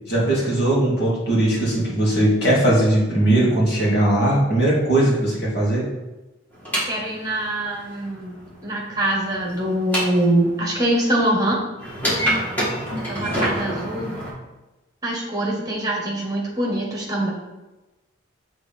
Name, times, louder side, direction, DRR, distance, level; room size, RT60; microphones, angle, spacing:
voice 1, 0.1-5.8, right 1 dB, 50° left, -6 dB, 2.4 m, -19 dB
sound 1, 6.5-10.6 11.8-14.3, equal, 10° left, 1.8 m, -27 dB
voice 2, 6.8-11.6 13.1-14.2 15.0-17.3, right 1 dB, 20° right, -3 dB, 1.5 m, -23 dB
6.7 x 3.7 x 5.2 m, 1.1 s
head